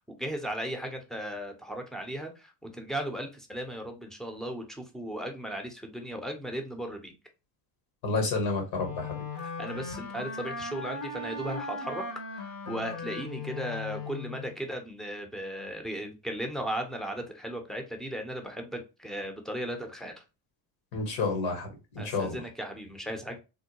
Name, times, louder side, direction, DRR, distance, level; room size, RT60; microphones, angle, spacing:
voice 1, 0.0-7.1 9.3-20.2 22.0-23.4, right 1 dB, ahead, 0.6 m, -36 dB
voice 2, 8.0-9.2 20.9-21.7 22.0-22.4, left 3 dB, 70° left, 1.5 m, -29 dB
Wind instrument woodwind instrument, 8.8-14.5, left 3 dB, 45° left, 1.0 m, -38 dB
3.6 x 2.1 x 2.9 m
supercardioid pair, 80°, 48 cm